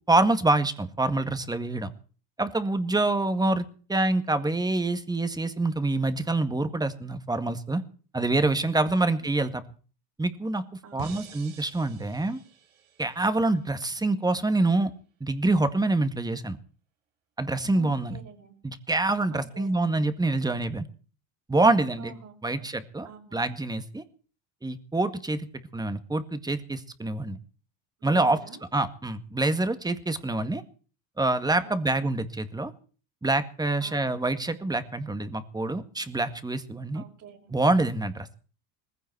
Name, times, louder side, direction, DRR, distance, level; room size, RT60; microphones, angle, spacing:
voice 1, 0.1-1.9 2.4-7.8 8.1-9.6 10.2-10.6 10.9-12.4 13.0-14.9 15.2-16.6 17.4-18.2 18.6-20.9 21.5-22.1 22.4-23.1 23.3-24.0 24.6-25.5 25.7-27.4 28.0-28.4 28.7-30.6 31.2-32.7 33.2-37.0 37.5-38.4, right 2 dB, 10° right, 10 dB, 1.9 m, -26 dB
voice 2, 2.9-3.3 8.7-9.3 10.8-11.3 17.7-18.5 19.3-19.8 22.0-22.8 23.0-23.5 28.0-28.6 30.2-30.4 31.6-32.1 33.8-34.3 36.9-37.5, right 5 dB, 50° right, 0 dB, 5.4 m, -48 dB
sound 1, 11.0-14.1, right 6 dB, 90° right, 5.1 m, -47 dB
19.5 x 15.5 x 4.7 m, 0.40 s
supercardioid pair, 110°, 39 cm